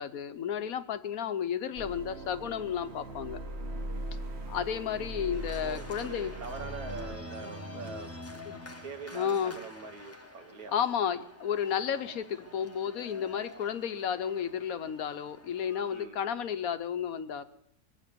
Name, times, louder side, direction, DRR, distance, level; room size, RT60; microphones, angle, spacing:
voice 1, 0.0-3.4 4.5-6.3 8.5-8.6 9.1-9.6 10.7-17.4, left 8 dB, 70° left, 11 dB, 1.2 m, -32 dB
sound 1, 1.8-7.2, right 1 dB, 50° right, 1.3 m, -40 dB
Organ, 5.3-16.1, left 1 dB, 10° left, 0.8 m, -47 dB
voice 2, 5.6-8.1 8.8-10.8 15.9-16.2, right 3 dB, 70° right, 7 dB, 1.8 m, -43 dB
21.5 x 8.4 x 6.8 m, 0.71 s
omnidirectional pair, 1.6 m